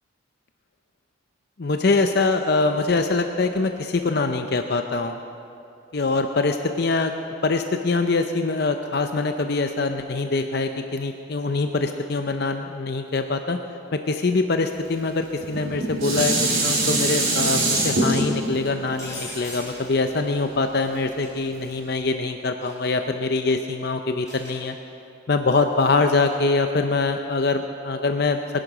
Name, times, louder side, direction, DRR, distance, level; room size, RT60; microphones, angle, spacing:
voice 1, 1.6-5.2 5.9-7.1 7.4-13.6 13.9-16.3 16.6-24.7 25.3-28.4, left 3 dB, 50° left, 6 dB, 0.6 m, -23 dB
Dishes pots and pans, 15.4-20.7 21.2-21.3, right 2 dB, 80° right, 4.0 m, -24 dB
sound 1, 19.0-20.0 22.6-22.9 24.3-24.7 25.9-26.3, left 1 dB, 15° left, 5.0 m, -39 dB
21.5 x 10.5 x 6.0 m, 2.6 s
head